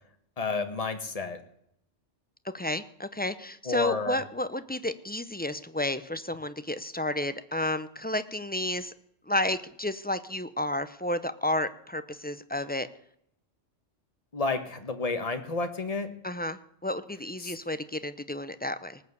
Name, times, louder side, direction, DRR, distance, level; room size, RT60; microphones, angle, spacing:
voice 1, 0.4-1.4 3.6-4.2 14.3-16.1 17.4-17.5, left 3 dB, 30° left, 7 dB, 1.6 m, -31 dB
voice 2, 2.5-8.9 9.3-12.9 16.2-19.0, left 1 dB, 15° left, 12 dB, 0.4 m, -31 dB
19.0 x 7.5 x 8.2 m, 0.71 s
omnidirectional pair, 1.3 m